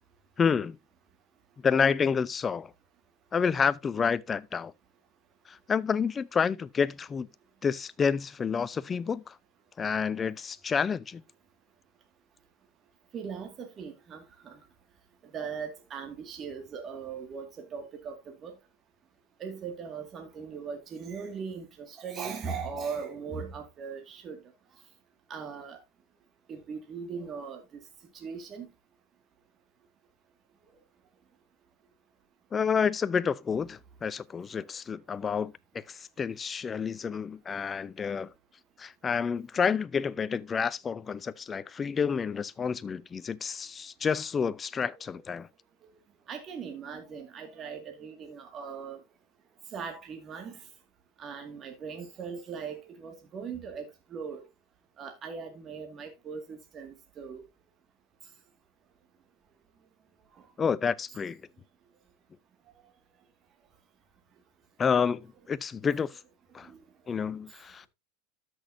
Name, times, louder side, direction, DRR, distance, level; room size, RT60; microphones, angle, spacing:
voice 1, 0.4-0.8 1.6-2.7 3.3-4.7 5.5-7.3 7.6-9.3 9.8-11.2 32.5-38.3 38.8-45.5 60.6-61.4 64.8-66.1 66.5-66.7 67.1-67.9, left 6 dB, 25° left, 0.5 m, -29 dB
voice 2, 13.1-14.6 15.3-18.5 19.4-24.4 25.3-25.8 26.5-27.6 28.2-28.7 46.3-49.0 49.7-50.6 51.2-54.4 55.0-57.4 66.7-66.8, right 6 dB, 35° right, 2.0 m, -39 dB
13.0 x 6.2 x 2.6 m
supercardioid pair, 115°, 0 cm